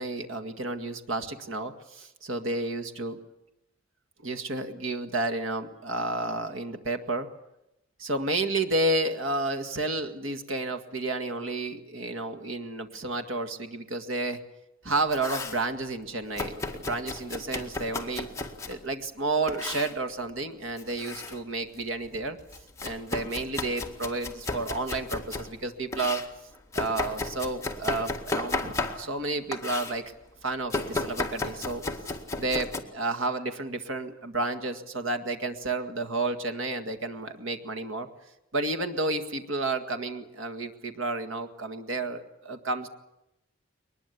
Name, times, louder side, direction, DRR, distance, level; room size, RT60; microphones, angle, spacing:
voice 1, 0.0-3.2 4.2-7.3 8.0-14.4 14.8-18.3 18.7-22.4 22.8-26.2 26.7-30.1 30.4-31.8 32.4-38.1 38.5-42.9, right 2 dB, 75° right, 9 dB, 2.0 m, -31 dB
Domestic sounds home sounds, 14.9-15.6 16.4-18.8 19.5-20.0 20.7-21.4 21.8-25.5 25.9-29.2 29.5-30.0 30.7-32.8, left 3 dB, 15° left, 1.9 m, -34 dB
22.5 x 20.5 x 8.4 m, 0.88 s
head